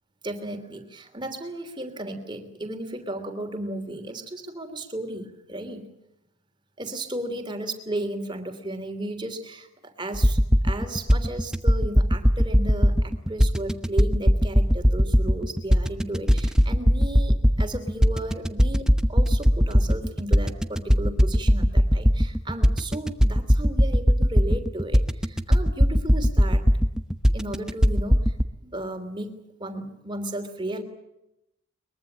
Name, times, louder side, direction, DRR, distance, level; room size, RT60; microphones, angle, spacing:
voice 1, 0.2-5.9 6.8-26.6 27.3-28.3 28.6-30.8, right 1 dB, 20° right, 7 dB, 3.1 m, -34 dB
sound 1, 10.1-28.4, equal, 5° right, 0.9 m, -20 dB
23.0 x 22.5 x 8.7 m, 0.85 s
head